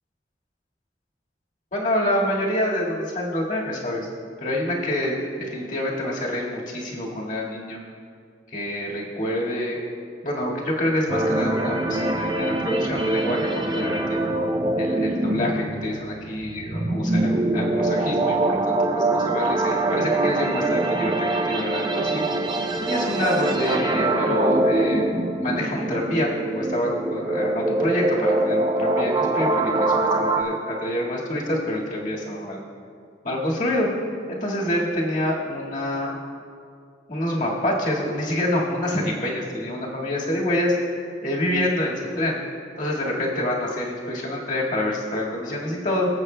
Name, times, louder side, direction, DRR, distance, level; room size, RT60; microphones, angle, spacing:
voice 1, 1.7-4.1 4.4-5.2 5.5-7.8 8.5-9.8 10.2-14.2 14.8-22.3 22.9-25.0 25.4-32.6 33.2-33.9 34.3-36.1 37.1-42.4 42.8-46.1, left 1 dB, 45° left, -4 dB, 1.8 m, -27 dB
sound 1, 11.1-30.4, right 2 dB, 25° right, 0.5 m, -24 dB
21.0 x 8.1 x 2.2 m, 2.3 s
head